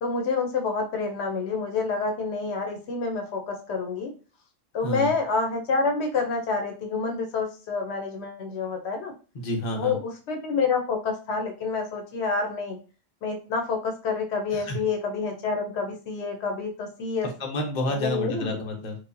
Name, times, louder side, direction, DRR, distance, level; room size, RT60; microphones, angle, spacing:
voice 1, 0.0-4.1 4.7-9.1 9.7-12.8 13.2-17.3 17.9-18.6, left 4 dB, 80° left, 4 dB, 0.9 m, -28 dB
voice 2, 9.3-10.0 14.5-14.8 17.4-19.0, left 1 dB, 45° left, 1 dB, 0.9 m, -29 dB
4.9 x 2.0 x 2.5 m, 0.35 s
omnidirectional pair, 1.1 m